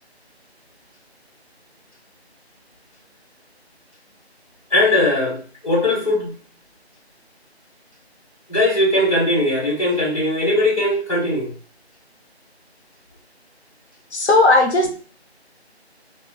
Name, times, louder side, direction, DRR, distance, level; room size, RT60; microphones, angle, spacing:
voice 1, 4.7-6.3 8.5-11.5, left 1 dB, 30° left, -5 dB, 1.2 m, -19 dB
voice 2, 14.1-14.9, left 2 dB, 80° left, 2 dB, 0.6 m, -15 dB
2.3 x 2.0 x 3.3 m, 0.40 s
figure-of-eight pair, 170°, 33 cm